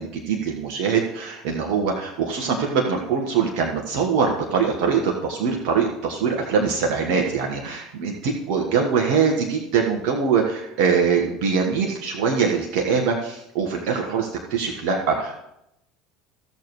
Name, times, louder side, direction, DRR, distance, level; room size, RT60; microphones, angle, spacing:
voice 1, 0.0-15.4, right 6 dB, 60° right, 1 dB, 1.5 m, -23 dB
16.0 x 6.8 x 3.2 m, 0.83 s
figure-of-eight pair, 70°, 0 cm